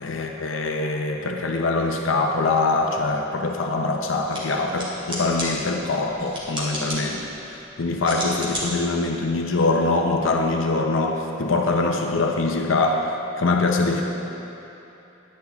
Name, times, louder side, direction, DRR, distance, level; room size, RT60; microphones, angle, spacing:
voice 1, 0.0-14.0, left 3 dB, 70° left, 2 dB, 0.7 m, -23 dB
sound 1, 4.1-10.2, equal, 25° right, 2.4 m, -35 dB
11.0 x 10.0 x 3.5 m, 2.9 s
head